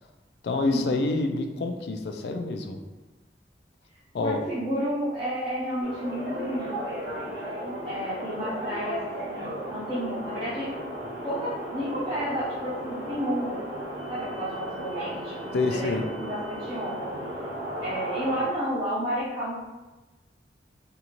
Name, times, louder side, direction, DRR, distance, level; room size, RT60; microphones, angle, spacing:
voice 1, 0.4-2.8 4.1-4.4 15.5-16.1, left 3 dB, 65° left, 5 dB, 0.3 m, -27 dB
voice 2, 4.2-6.8 7.2-7.6 7.8-9.4 9.7-10.7 11.2-13.6 14.1-17.1 17.8-19.6, equal, 25° right, -10 dB, 0.5 m, -31 dB
sound 1, 5.8-18.4, right 1 dB, 60° right, 0.7 m, -35 dB
2.7 x 2.4 x 2.9 m, 1.2 s
head